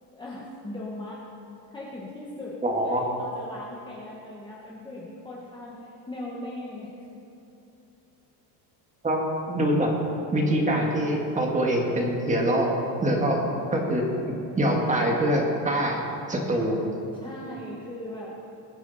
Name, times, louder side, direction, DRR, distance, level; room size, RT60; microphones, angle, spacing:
voice 1, 0.1-1.2 1.7-2.6 2.8-7.0 17.2-18.3, left 1 dB, 10° left, -5 dB, 1.3 m, -39 dB
voice 2, 2.6-3.0 9.0-9.2 9.5-9.9 10.3-13.4 13.7-16.0 16.3-16.8, right 1 dB, 15° right, 0 dB, 1.9 m, -24 dB
21.0 x 9.4 x 4.2 m, 2.8 s
cardioid pair, 160°, 46 cm